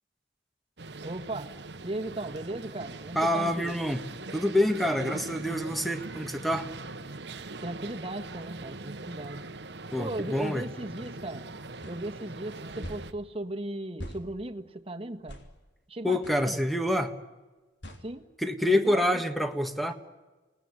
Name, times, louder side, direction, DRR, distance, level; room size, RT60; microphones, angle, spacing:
sound 1, 0.8-13.1, right 2 dB, 65° right, 1.2 m, -41 dB
voice 1, 1.0-3.7 7.6-9.5 10.0-11.5 11.9-15.4 15.9-16.6 18.0-18.2 18.7-19.2, right 1 dB, 30° right, 1.6 m, -37 dB
voice 2, 3.1-4.0 4.3-6.7 9.9-10.7 16.0-17.1 18.4-19.9, left 1 dB, ahead, 1.6 m, -27 dB
sound 2, 11.8-12.0 12.8-13.1 14.0-14.2 15.3-15.5 16.2-16.4 17.8-18.0, equal, 75° left, 3.3 m, -41 dB
28.0 x 19.5 x 9.8 m
head